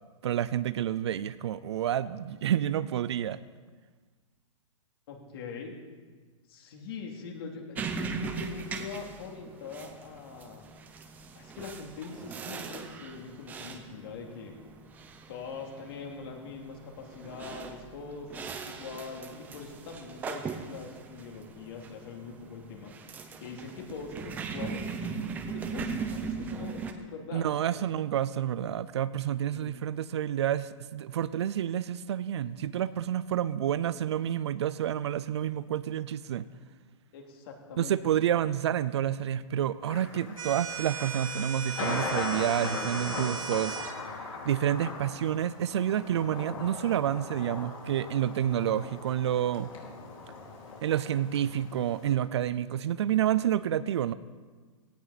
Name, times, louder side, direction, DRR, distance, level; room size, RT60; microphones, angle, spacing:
voice 1, 0.2-3.4 27.3-36.5 37.8-43.8 44.1-49.7 50.8-54.1, right 10 dB, 55° right, 16 dB, 0.6 m, -29 dB
voice 2, 5.1-5.7 6.5-10.6 11.3-14.5 15.3-22.9 23.4-25.0 25.2-27.8 29.5-29.7 37.1-38.0, left 5 dB, 45° left, 1 dB, 2.9 m, -42 dB
sound 1, 7.7-26.9, right 5 dB, 10° right, 0.7 m, -39 dB
Thunder, 39.8-52.1, left 4 dB, 85° left, 4.9 m, -39 dB
sound 2, 40.4-44.0, right 6 dB, 80° right, 2.1 m, -37 dB
17.5 x 17.0 x 4.2 m, 1.4 s
hypercardioid pair, 170°, 17 cm